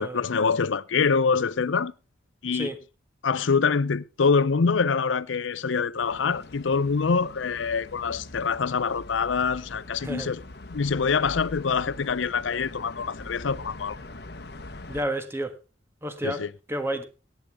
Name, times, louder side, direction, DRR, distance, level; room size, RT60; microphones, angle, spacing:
voice 1, 0.0-1.9 2.4-2.7 3.2-10.4 10.7-14.0 16.2-16.5, left 5 dB, 90° left, 0.6 m, -25 dB
sound 1, 6.0-15.1, left 2 dB, 60° left, 1.0 m, -43 dB
sound 2, 7.7-12.8, right 1 dB, 45° right, 7.2 m, -61 dB
voice 2, 14.9-15.5 16.0-16.4 16.7-17.0, right 1 dB, 15° right, 1.4 m, -30 dB
17.5 x 9.3 x 3.5 m
head